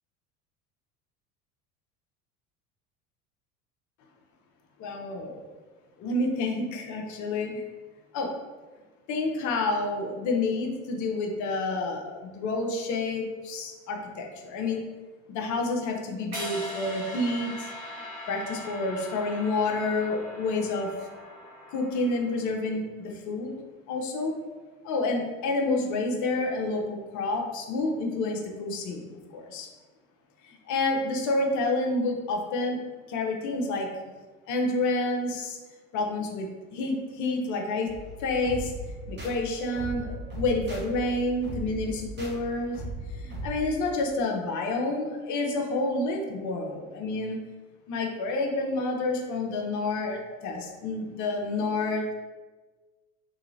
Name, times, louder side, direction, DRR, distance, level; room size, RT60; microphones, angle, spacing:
voice 1, 4.8-5.5 6.0-7.6 8.1-8.3 9.1-14.8 15.3-17.7 18.0-21.1 21.7-23.5 23.9-24.3 24.8-29.0 29.3-29.7 30.4-32.8 33.1-33.9 34.5-35.6 35.9-37.9 38.2-38.7 39.1-42.8 43.2-47.4 47.9-52.1, left 2 dB, 45° left, 1 dB, 0.7 m, -29 dB
sound 1, 16.3-22.4, left 1 dB, 85° right, 1.2 m, -40 dB
sound 2, 37.9-43.5, right 1 dB, 25° right, 1.1 m, -38 dB
3.1 x 2.8 x 2.7 m, 1.3 s
hypercardioid pair, 70°, 43 cm